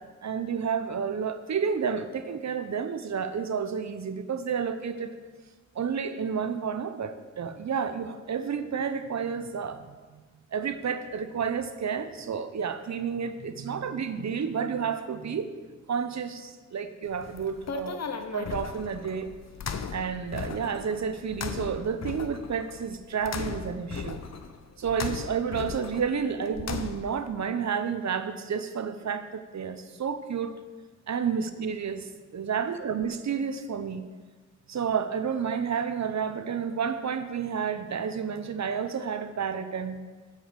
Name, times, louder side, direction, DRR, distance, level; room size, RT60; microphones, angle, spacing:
voice 1, 0.2-5.2 5.7-10.2 10.5-15.5 15.9-18.0 18.3-19.3 19.9-24.2 24.8-30.6 31.1-34.0 34.7-40.0, right 6 dB, 65° right, 10 dB, 0.7 m, -30 dB
sound 1, 17.1-27.3, left 6 dB, 60° left, 0.7 m, -37 dB
8.3 x 5.0 x 7.4 m, 1.3 s
wide cardioid pair, 125°, 30 cm